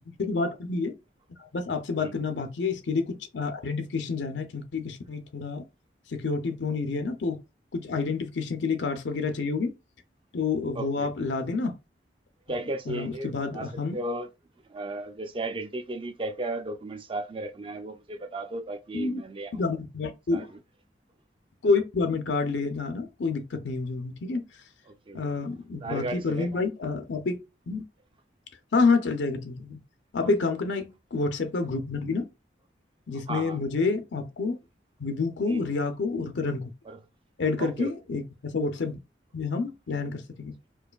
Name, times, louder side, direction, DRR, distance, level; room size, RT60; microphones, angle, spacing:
voice 1, 0.2-0.9 1.4-5.6 6.1-7.4 7.7-9.7 10.3-11.7 12.9-14.0 18.9-19.2 19.5-20.4 21.6-24.4 25.1-27.4 27.7-27.8 28.7-29.8 30.1-32.2 33.1-34.6 35.0-36.7 37.4-38.2 38.5-39.0 39.3-40.5, left 4 dB, 85° left, 0.5 m, -28 dB
voice 2, 10.7-11.1 12.5-14.3 14.7-19.6 20.3-20.6 24.9-25.2 25.8-26.5 30.2-30.5 33.3-33.6 35.5-35.7 36.8-37.0 37.6-37.9, right 2 dB, 30° right, 0.4 m, -35 dB
4.5 x 2.5 x 2.3 m
head